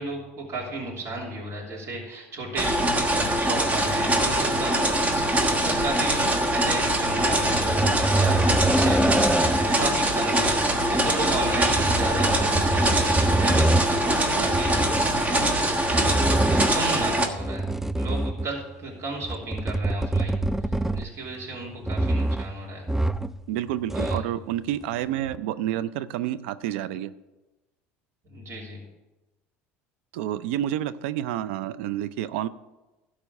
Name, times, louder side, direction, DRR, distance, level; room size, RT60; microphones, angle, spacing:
voice 1, 0.0-15.4 16.7-17.6 18.0-20.4 20.9-22.8 23.9-24.2 28.2-28.8, right 2 dB, 45° right, -3 dB, 3.1 m, -34 dB
sound 1, 2.6-17.3, right 1 dB, 20° right, 1.3 m, -23 dB
sound 2, 7.6-9.8 11.5-13.9 14.4-15.1 15.8-16.9 17.4-18.6 19.2-21.3 21.8-22.5 22.9-23.4 23.7-24.4 25.3-25.4, right 2 dB, 5° right, 0.4 m, -25 dB
voice 2, 23.5-27.1 30.1-32.5, right 12 dB, 75° right, 15 dB, 0.5 m, -29 dB
12.5 x 4.3 x 8.1 m, 1.1 s
hypercardioid pair, 85°, 7 cm